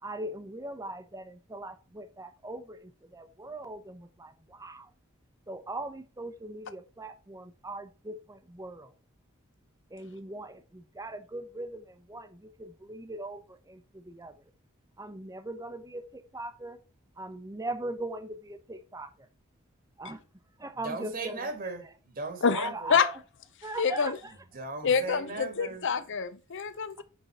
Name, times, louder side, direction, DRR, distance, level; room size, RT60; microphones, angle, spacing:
voice 1, 0.0-4.9 5.5-8.9 9.9-14.4 15.0-16.8 17.2-19.3 20.0-20.2 20.6-21.7 22.5-23.2 23.6-24.3 27.0-27.1, right 1 dB, 15° right, 0.8 m, -40 dB
voice 2, 20.8-23.0 24.2-25.9, right 3 dB, 45° right, 1.5 m, -38 dB
voice 3, 22.4-23.1 23.8-24.2 24.8-27.0, left 6 dB, 60° left, 0.7 m, -27 dB
9.1 x 3.8 x 4.2 m
head